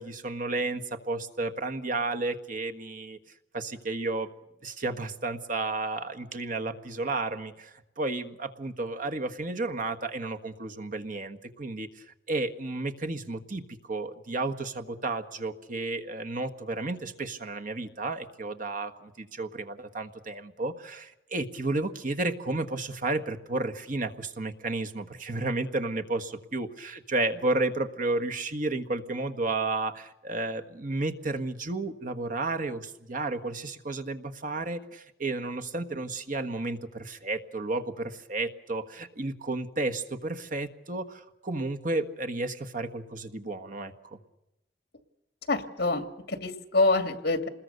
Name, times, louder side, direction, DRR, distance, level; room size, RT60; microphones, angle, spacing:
voice 1, 0.0-3.2 3.5-4.3 4.6-13.6 13.9-44.2, right 2 dB, 50° right, 6 dB, 1.5 m, -32 dB
voice 2, 45.5-47.5, left 2 dB, 60° left, 9 dB, 2.2 m, -26 dB
27.0 x 21.0 x 6.8 m, 0.90 s
head